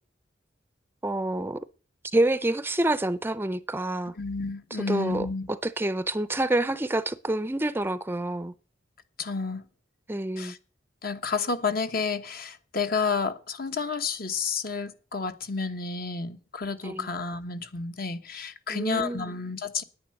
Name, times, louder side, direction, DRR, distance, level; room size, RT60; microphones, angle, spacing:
voice 1, 1.0-1.6 2.1-4.1 4.9-8.5 10.1-10.5 16.8-17.1 18.7-19.3, right 1 dB, 10° right, 0.5 m, -27 dB
voice 2, 4.2-5.5 9.2-9.6 10.4-10.6 11.0-19.8, left 4 dB, 55° left, 1.2 m, -30 dB
10.0 x 9.6 x 6.5 m
head